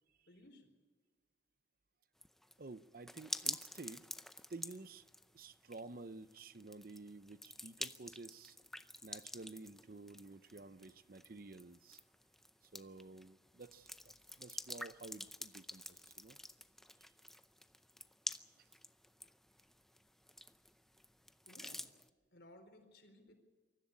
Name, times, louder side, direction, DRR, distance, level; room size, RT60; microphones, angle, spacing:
voice 1, 0.3-0.7 21.4-21.9 22.3-23.3, left 1 dB, 70° left, 4.2 m, -60 dB
sound 1, 2.2-22.1, left 1 dB, ahead, 0.5 m, -49 dB
voice 2, 2.6-4.1 4.5-5.0 5.3-8.6 9.0-12.0 12.7-16.4 18.6-18.7, right 3 dB, 50° right, 0.7 m, -52 dB
23.5 x 14.0 x 8.6 m
head